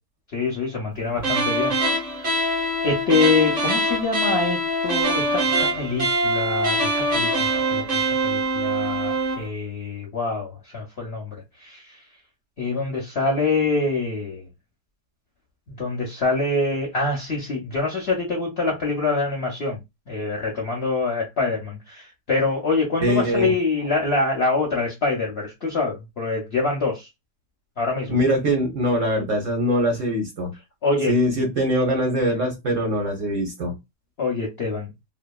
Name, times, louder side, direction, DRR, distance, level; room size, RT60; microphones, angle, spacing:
voice 1, 0.3-1.7 2.8-11.4 11.6-11.8 12.6-14.4 15.8-19.8 20.1-27.1 27.8-28.2 30.8-31.2 34.2-34.9, left 3 dB, 55° left, 0.7 m, -25 dB
sound 1, 1.2-9.5, right 1 dB, 35° right, 0.7 m, -23 dB
voice 2, 23.0-23.5 28.1-30.5 31.1-33.7, equal, 60° right, 1.0 m, -22 dB
2.8 x 2.3 x 2.2 m
omnidirectional pair, 1.8 m